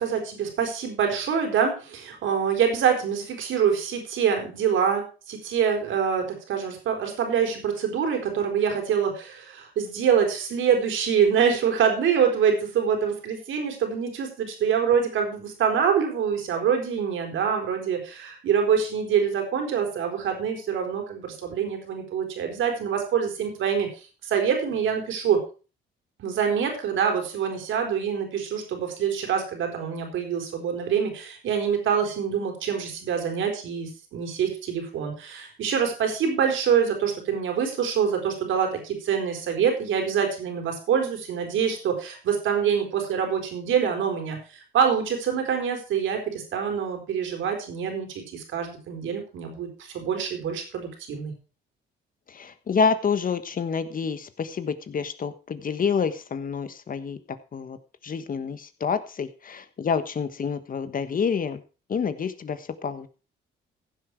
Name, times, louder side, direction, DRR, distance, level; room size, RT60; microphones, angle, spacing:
voice 1, 0.0-23.9 24.2-25.4 26.2-44.4 44.7-51.3, right 7 dB, 80° right, 4 dB, 4.2 m, -25 dB
voice 2, 52.3-57.2 57.5-57.8 58.0-61.6 61.9-63.1, left 6 dB, 45° left, 11 dB, 1.4 m, -28 dB
15.5 x 7.8 x 4.6 m, 0.35 s
cardioid pair, 90°, 20 cm